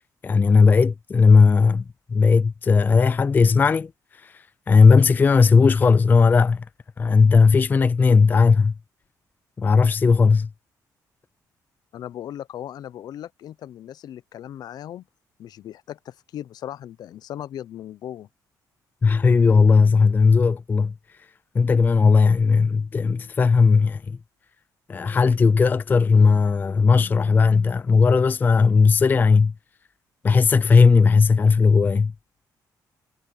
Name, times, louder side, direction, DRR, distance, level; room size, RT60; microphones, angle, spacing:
voice 1, 0.2-6.7 7.0-8.7 9.6-10.5 19.0-20.9 21.5-24.2 24.9-29.5 30.2-32.1, left 5 dB, 25° left, 0.3 m, -17 dB
voice 2, 11.9-15.1 15.4-18.3, left 11 dB, 65° left, 0.6 m, -37 dB
cardioid pair, 110°, 7 cm